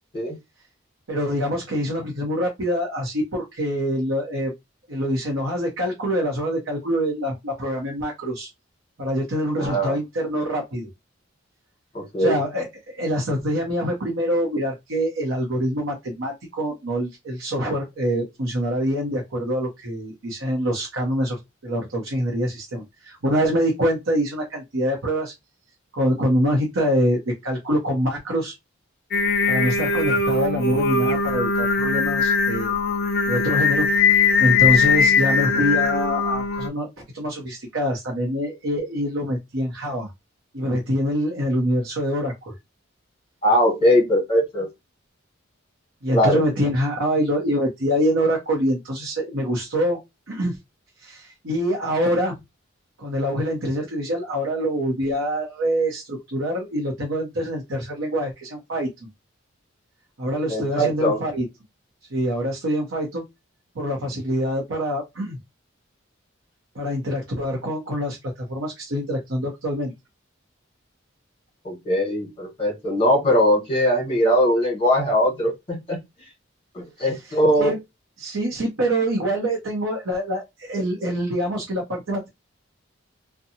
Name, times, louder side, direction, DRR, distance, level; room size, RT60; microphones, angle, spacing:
voice 1, 1.1-4.5 4.9-8.5 9.0-10.9 12.2-25.3 25.9-28.5 29.5-32.8 33.3-40.1 40.5-42.5 46.0-50.0 50.3-50.6 51.0-52.4 53.0-59.1 60.2-61.4 62.1-63.2 63.7-65.4 66.7-69.9 77.6-77.8 78.2-82.3, equal, 80° right, 0.8 m, -25 dB
voice 2, 9.6-10.0 11.9-12.4 43.4-44.7 46.1-46.4 60.5-61.2 71.6-76.0 76.7-77.7, equal, 25° left, 1.2 m, -20 dB
Singing, 29.1-36.7, left 5 dB, 50° left, 0.5 m, -20 dB
2.7 x 2.2 x 2.6 m
head